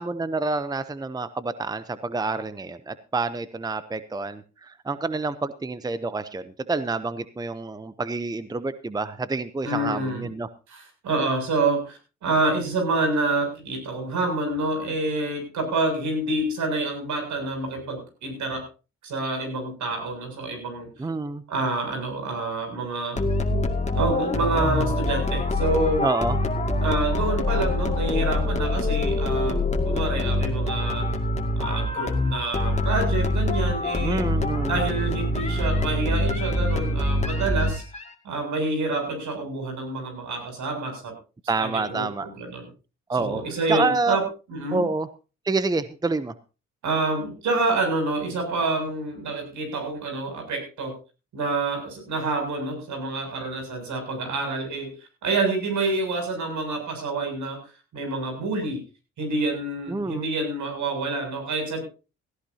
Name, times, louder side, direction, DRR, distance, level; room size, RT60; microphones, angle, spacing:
voice 1, 0.0-10.5 21.0-21.4 26.0-26.4 34.0-34.8 41.5-42.3 43.1-43.4 43.7-44.2 44.7-45.1 45.4-46.3 59.9-60.3, right 3 dB, 15° right, 13 dB, 0.7 m, -28 dB
voice 2, 9.6-10.3 10.7-18.6 19.0-20.9 21.5-23.3 23.9-26.0 26.8-29.6 29.9-31.1 31.6-34.3 34.7-37.8 38.2-41.1 41.5-42.7 43.2-44.2 44.5-44.8 46.8-50.9 51.3-54.9 55.2-57.6 57.9-58.8 59.2-61.8, right 2 dB, 75° right, 4 dB, 7.4 m, -27 dB
sound 1, 23.2-38.1, left 2 dB, 20° left, 2.2 m, -25 dB
17.5 x 15.0 x 2.8 m, 0.32 s
cardioid pair, 90°, 30 cm